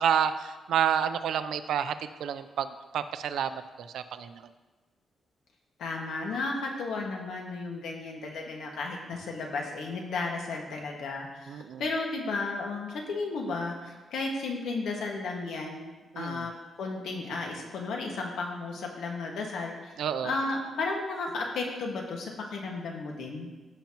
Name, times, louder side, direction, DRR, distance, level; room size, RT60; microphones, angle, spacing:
voice 1, 0.0-4.5 11.5-11.9 16.1-16.5 20.0-20.3, right 8 dB, 90° right, 10 dB, 0.5 m, -29 dB
voice 2, 5.8-11.5 11.8-16.5 16.8-19.9 20.2-23.5, left 3 dB, 85° left, 0 dB, 1.6 m, -34 dB
16.0 x 5.8 x 3.0 m, 1.2 s
wide cardioid pair, 150°, 0 cm